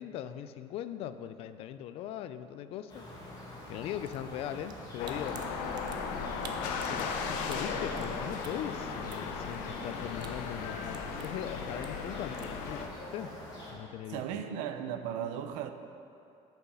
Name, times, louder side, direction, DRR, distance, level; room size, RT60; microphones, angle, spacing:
voice 1, 0.0-3.0 3.7-5.5 6.9-13.3 13.7-14.3, left 10 dB, 50° left, 12 dB, 0.4 m, -40 dB
sound 1, 2.9-13.7, left 1 dB, 30° left, 1.8 m, -47 dB
sound 2, 3.8-12.6, right 6 dB, 35° right, 0.6 m, -54 dB
RG Open Parking Garage, 5.0-12.9, left 5 dB, 85° left, 0.8 m, -36 dB
voice 2, 14.1-15.7, right 9 dB, 90° right, 8 dB, 0.6 m, -36 dB
8.1 x 7.0 x 5.5 m, 2.7 s
cardioid pair, 170°, 13 cm